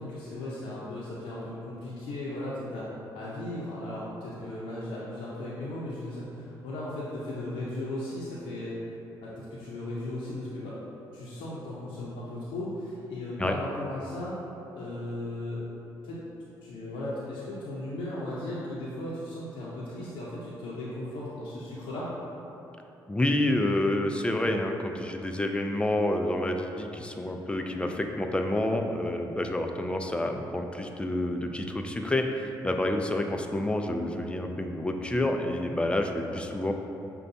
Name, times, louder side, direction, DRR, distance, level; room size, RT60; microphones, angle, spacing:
voice 1, 0.0-2.9 3.1-8.8 9.2-10.8 11.1-14.4 14.7-15.6 16.0-16.2 16.6-22.1 36.3-36.4, left 1 dB, 85° left, -7 dB, 0.6 m, -36 dB
voice 2, 23.1-36.7, left 1 dB, 15° left, 4 dB, 0.3 m, -28 dB
6.4 x 2.2 x 2.6 m, 2.9 s
cardioid pair, 75°, 8 cm